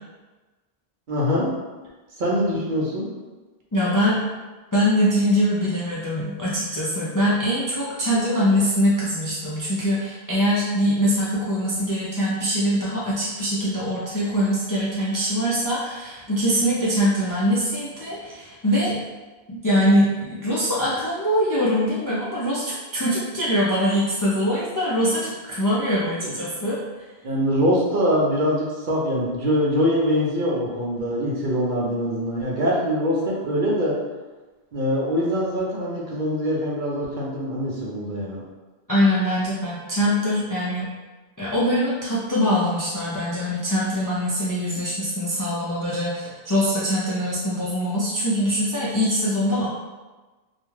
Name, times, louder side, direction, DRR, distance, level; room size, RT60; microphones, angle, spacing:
voice 1, 1.1-1.6 2.2-3.1 26.2-26.6 27.2-34.0 34.7-38.4, equal, 55° right, -4 dB, 0.7 m, -23 dB
voice 2, 3.7-4.2 4.7-19.0 19.5-26.8 38.9-40.9 41.4-49.7, equal, 35° left, -8 dB, 0.3 m, -23 dB
2.4 x 2.2 x 3.1 m, 1.2 s
omnidirectional pair, 1.0 m